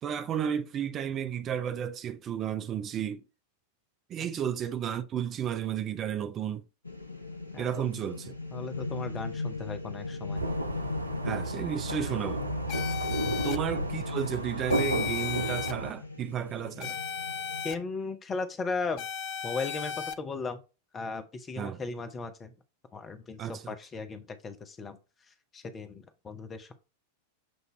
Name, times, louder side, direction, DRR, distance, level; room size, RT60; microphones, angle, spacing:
voice 1, 0.0-3.2 4.1-6.6 7.6-8.3 11.2-12.5 13.4-17.0 21.6-21.8 23.4-23.8, right 9 dB, 30° right, 0.6 m, -33 dB
sound 1, 6.9-17.6, left 3 dB, 85° left, 0.6 m, -38 dB
voice 2, 7.5-7.9 8.5-10.4 13.2-13.3 17.6-19.1 19.4-20.6 20.9-22.5 22.9-25.0 25.5-26.7, left 4 dB, 20° left, 0.9 m, -36 dB
sound 2, 10.3-15.9, right 2 dB, 85° right, 0.5 m, -33 dB
sound 3, 12.7-13.6 14.7-15.7 16.8-17.7 19.0-20.1, left 8 dB, 40° left, 0.5 m, -35 dB
7.8 x 2.7 x 4.5 m
figure-of-eight pair, 90°, 0 cm